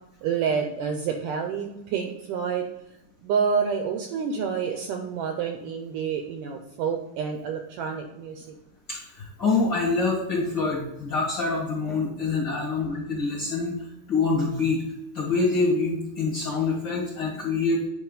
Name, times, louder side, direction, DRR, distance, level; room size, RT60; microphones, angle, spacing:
voice 1, 0.2-2.7 3.2-8.6, right 6 dB, 80° right, 5 dB, 1.9 m, -28 dB
voice 2, 8.9-13.7 14.1-14.8 15.1-17.9, left 3 dB, 40° left, -5 dB, 1.7 m, -25 dB
9.0 x 5.5 x 3.9 m, 0.89 s
omnidirectional pair, 4.4 m